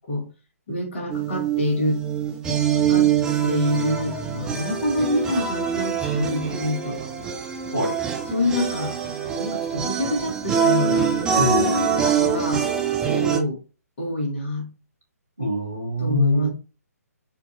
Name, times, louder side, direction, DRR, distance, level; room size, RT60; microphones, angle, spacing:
voice 1, 0.7-2.0 2.7-3.1 3.4-7.0 8.3-9.0 9.4-11.1 12.1-12.7 13.1-13.6 14.0-14.7 16.0-16.5, left 1 dB, 45° left, 1.5 m, -26 dB
sound 1, 1.1-13.4, right 7 dB, 10° right, 0.4 m, -24 dB
voice 2, 11.4-12.1 15.4-16.5, left 1 dB, 90° right, 1.7 m, -23 dB
4.3 x 2.6 x 2.4 m
figure-of-eight pair, 130°, 9 cm